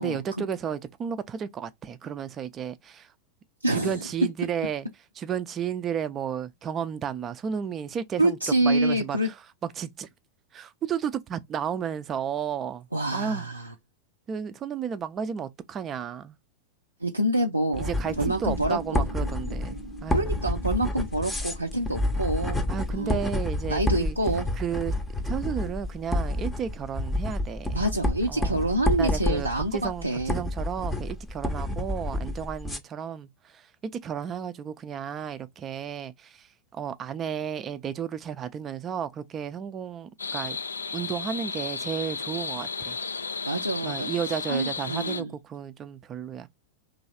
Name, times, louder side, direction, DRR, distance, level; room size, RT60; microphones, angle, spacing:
voice 1, 0.0-3.1 3.7-4.9 5.2-8.4 8.6-9.3 9.6-10.1 10.5-12.9 13.1-13.4 14.3-16.4 17.8-20.4 22.7-24.2 24.6-25.0 25.3-27.8 28.3-33.7 34.0-36.5 36.7-40.6 40.9-43.0 43.8-46.5, right 8 dB, 25° right, 0.5 m, -33 dB
voice 2, 3.6-4.0 8.2-9.3 12.9-13.7 17.0-17.9 18.2-19.1 20.1-22.6 22.9-23.2 23.7-24.5 27.7-30.3 43.5-44.1 44.5-45.3, right 1 dB, 85° right, 0.5 m, -27 dB
sound 1, 17.7-32.8, left 1 dB, 10° left, 0.7 m, -29 dB
sound 2, 18.0-27.2, right 1 dB, 60° left, 0.8 m, -45 dB
sound 3, 40.2-45.2, left 5 dB, 75° left, 0.3 m, -33 dB
3.1 x 2.7 x 4.1 m
figure-of-eight pair, 90°, 0 cm